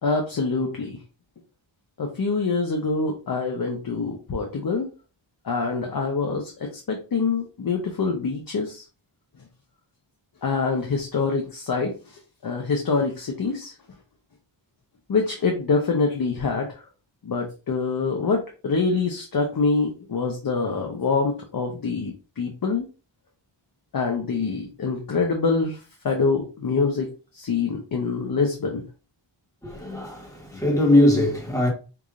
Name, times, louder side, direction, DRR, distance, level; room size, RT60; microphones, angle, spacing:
voice 1, 0.0-1.0 2.0-4.9 5.4-8.8 10.4-13.7 15.1-16.7 17.2-22.9 23.9-25.8 26.0-27.1 27.3-28.8, left 4 dB, 50° left, 0.7 m, -25 dB
voice 2, 29.6-31.7, left 1 dB, 5° left, 1.2 m, -20 dB
4.8 x 2.5 x 2.4 m
wide cardioid pair, 145°, 47 cm